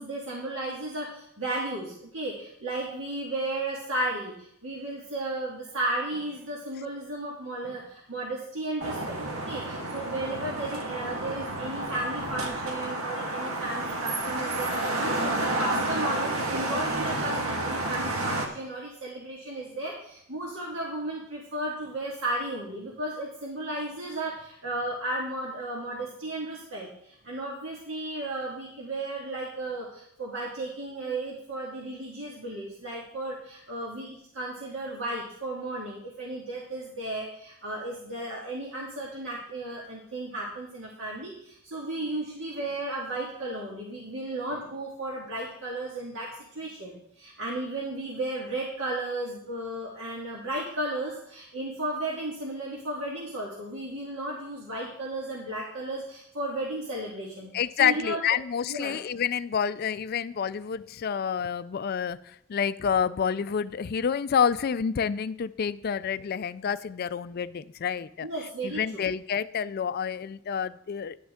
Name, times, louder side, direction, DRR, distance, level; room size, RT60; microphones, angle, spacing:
voice 1, 0.0-57.5 57.8-58.2 58.7-58.9 68.2-69.1, right 2 dB, 60° right, -4 dB, 1.8 m, -34 dB
sound 1, 8.8-18.5, right 2 dB, 80° right, 1.6 m, -30 dB
voice 2, 57.5-68.3 68.6-71.2, left 7 dB, 45° left, 15 dB, 0.3 m, -28 dB
11.0 x 8.7 x 3.6 m, 0.71 s
head